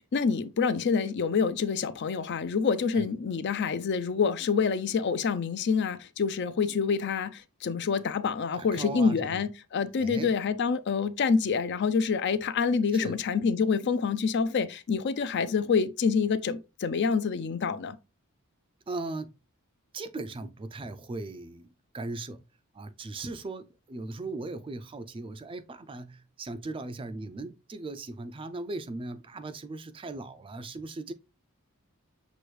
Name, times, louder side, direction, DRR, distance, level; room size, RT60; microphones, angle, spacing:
voice 1, 0.1-18.0, left 5 dB, 50° left, 0.4 m, -27 dB
voice 2, 8.5-9.4 10.0-10.3 12.9-13.2 18.9-19.4 19.9-22.4 22.7-31.1, right 2 dB, 25° right, 0.3 m, -38 dB
6.2 x 2.6 x 3.1 m
head